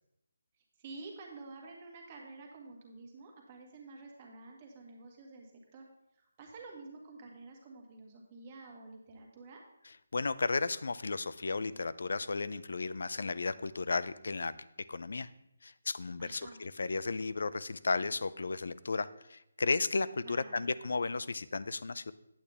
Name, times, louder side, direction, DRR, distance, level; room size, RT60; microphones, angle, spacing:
voice 1, 0.8-5.8 6.1-9.6 16.2-16.6 20.2-20.7, right 3 dB, 25° right, 0 dB, 1.6 m, -50 dB
voice 2, 10.1-14.6 14.9-15.3 15.6-22.1, left 3 dB, 70° left, 16 dB, 0.4 m, -34 dB
8.8 x 8.4 x 3.4 m, 0.84 s
hypercardioid pair, 165°, 0 cm